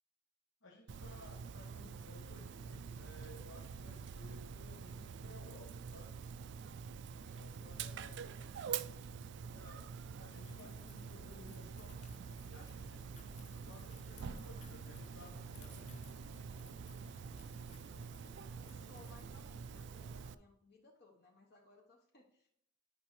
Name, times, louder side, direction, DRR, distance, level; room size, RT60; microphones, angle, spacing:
voice 1, 0.6-6.2 7.1-8.9 9.5-16.4, left 2 dB, 85° left, 0 dB, 1.0 m, -58 dB
Dog, 0.9-20.3, right 6 dB, 65° right, 0.4 m, -46 dB
voice 2, 7.8-8.6 18.1-22.5, left 3 dB, 55° left, -1 dB, 1.1 m, -63 dB
sound 1, 10.3-19.3, left 5 dB, 40° left, 0.4 m, -62 dB
10.5 x 5.3 x 3.1 m, 0.72 s
head